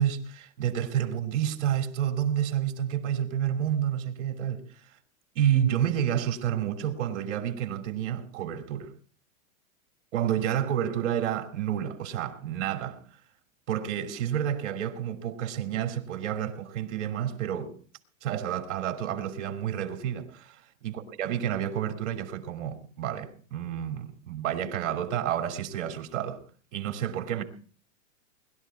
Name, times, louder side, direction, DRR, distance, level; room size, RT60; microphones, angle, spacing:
voice 1, 0.0-4.6 5.3-8.9 10.1-13.0 13.7-17.7 18.2-26.4 26.7-27.4, right 10 dB, 55° right, 3.1 m, -29 dB
21.0 x 12.5 x 4.6 m
supercardioid pair, 175°, 42 cm